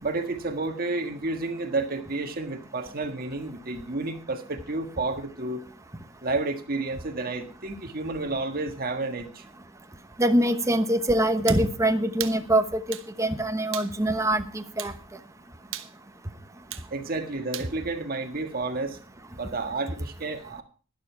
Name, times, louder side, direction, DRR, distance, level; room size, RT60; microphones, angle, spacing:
voice 1, 0.0-5.6 6.2-9.4 16.9-19.0 19.4-20.6, right 3 dB, 50° right, 6 dB, 1.6 m, -31 dB
voice 2, 10.2-14.9, right 1 dB, 15° right, 8 dB, 1.0 m, -24 dB
sound 1, 11.5-11.7 12.2-12.4 12.9-13.1 13.7-13.9 14.8-15.0 15.7-15.9 16.7-16.9 17.5-17.7, right 12 dB, 75° right, 1.1 m, -35 dB
11.5 x 11.0 x 4.6 m, 0.38 s
head